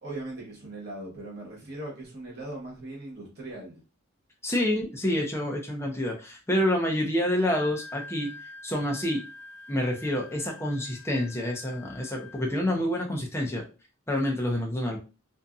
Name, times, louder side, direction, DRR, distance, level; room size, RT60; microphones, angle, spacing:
voice 1, 0.0-3.8, right 2 dB, 50° right, -4 dB, 1.1 m, -39 dB
voice 2, 4.4-8.3 8.6-9.2 9.7-13.6 14.1-15.0, left 1 dB, 10° left, 0 dB, 0.6 m, -28 dB
Wind instrument woodwind instrument, 7.3-12.6, left 3 dB, 80° left, 0.4 m, -46 dB
2.6 x 2.5 x 2.3 m, 0.31 s
head